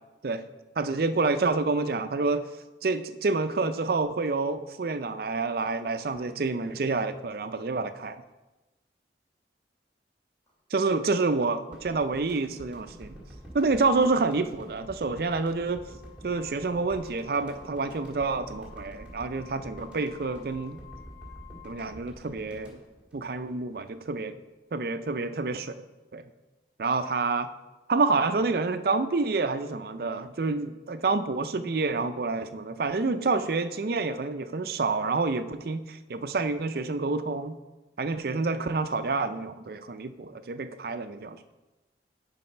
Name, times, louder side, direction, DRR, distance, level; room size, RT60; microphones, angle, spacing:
voice 1, 0.8-2.4 2.8-8.2 10.7-11.6 11.8-13.2 13.5-15.8 16.2-20.8 21.6-22.8 23.1-24.4 24.7-25.7 26.1-26.2 26.8-27.5 27.9-37.6 38.0-41.4, right 3 dB, 55° right, 11 dB, 0.5 m, -28 dB
sound 1, 8.0-8.2 10.5-10.6 11.5-21.9, left 13 dB, 20° left, 2.4 m, -55 dB
sound 2, 11.7-23.9 24.2-24.3, right 1 dB, 5° right, 1.8 m, -48 dB
10.0 x 4.1 x 5.4 m, 1.1 s
head